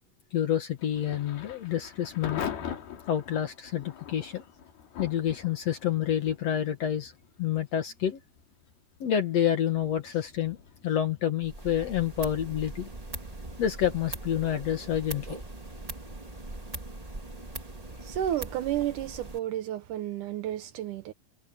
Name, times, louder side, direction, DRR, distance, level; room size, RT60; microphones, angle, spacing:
voice 1, 0.3-2.4 3.1-4.4 5.0-7.1 7.4-8.2 9.0-10.6 10.8-12.9 13.6-15.4, left 10 dB, 55° left, 2.1 m, -28 dB
Thunder / Rain, 0.8-17.5, left 8 dB, 90° left, 4.7 m, -44 dB
sound 1, 11.4-19.4, right 2 dB, 20° right, 1.0 m, -41 dB
voice 2, 18.0-21.1, right 11 dB, 70° right, 2.1 m, -32 dB
omnidirectional pair, 4.2 m